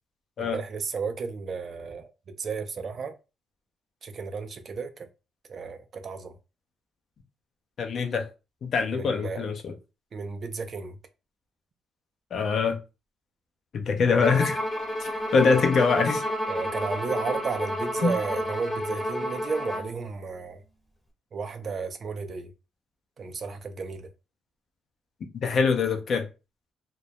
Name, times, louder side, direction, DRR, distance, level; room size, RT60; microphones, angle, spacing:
voice 1, 0.4-2.1 2.4-3.1 4.0-5.1 5.5-6.3 8.9-9.4 10.1-11.0 16.5-20.6 21.3-22.5 23.2-24.1, right 5 dB, 50° right, 0.4 m, -33 dB
voice 2, 7.8-8.3 8.6-9.7 12.3-12.8 13.7-14.6 15.0-16.2 18.0-18.1 25.4-26.2, left 5 dB, 55° left, 0.5 m, -24 dB
Bowed string instrument, 14.2-19.9, equal, 5° left, 0.7 m, -30 dB
2.2 x 2.0 x 2.8 m
cardioid pair, 90°, 0 cm